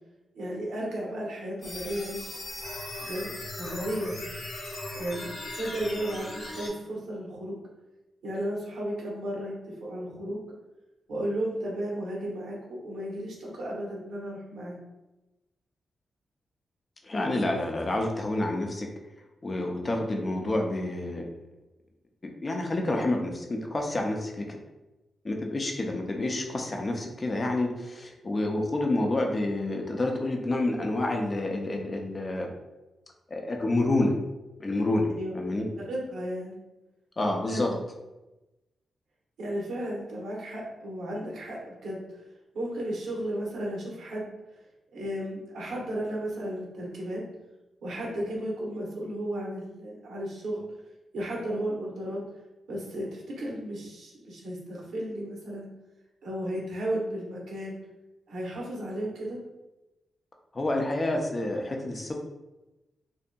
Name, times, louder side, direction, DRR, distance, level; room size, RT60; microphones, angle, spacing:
voice 1, 0.3-2.4 3.0-4.2 4.9-7.6 8.2-10.4 11.1-14.8 35.2-35.4 35.8-36.6 37.5-37.8 39.4-42.0 42.5-44.3 44.9-47.2 47.8-50.6 51.1-52.2 52.7-55.7 56.2-57.8 58.3-59.4, right 1 dB, 85° right, -3 dB, 0.8 m, -34 dB
sound 1, 1.6-6.7, left 1 dB, 55° left, 0.7 m, -38 dB
voice 2, 17.0-18.9 19.4-21.3 22.4-24.6 25.2-32.5 33.3-34.1 34.6-35.7 37.2-37.7 60.5-62.2, left 2 dB, 35° left, 2 dB, 0.4 m, -28 dB
2.6 x 2.6 x 2.2 m, 1.0 s
cardioid pair, 90°, 0 cm